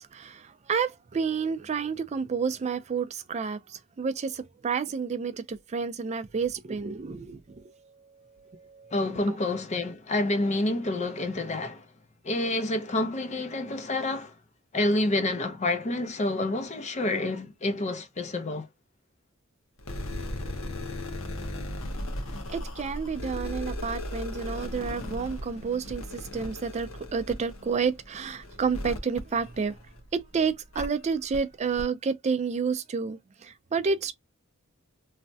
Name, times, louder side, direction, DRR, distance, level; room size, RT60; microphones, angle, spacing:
voice 1, 0.0-8.9 9.3-9.4 22.5-29.8 30.1-34.1, right 5 dB, 35° right, 0.4 m, -30 dB
voice 2, 8.9-11.9 12.2-14.3 14.7-18.7, left 2 dB, 35° left, 0.6 m, -28 dB
sound 1, 19.8-30.2 30.7-30.9 31.3-31.4 31.8-31.9, left 1 dB, 85° left, 0.9 m, -37 dB
3.2 x 2.1 x 2.6 m
head